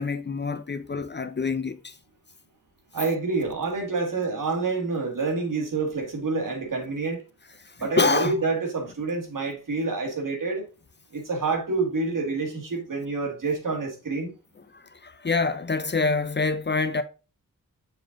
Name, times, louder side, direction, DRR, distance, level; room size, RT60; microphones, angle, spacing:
voice 1, 0.0-1.9 7.6-8.3 14.7-17.0, left 4 dB, 35° left, 0.5 m, -26 dB
voice 2, 2.9-7.2 7.8-10.6 11.1-14.3, right 3 dB, 70° right, 1.7 m, -27 dB
6.8 x 3.8 x 3.7 m
wide cardioid pair, 80°, 34 cm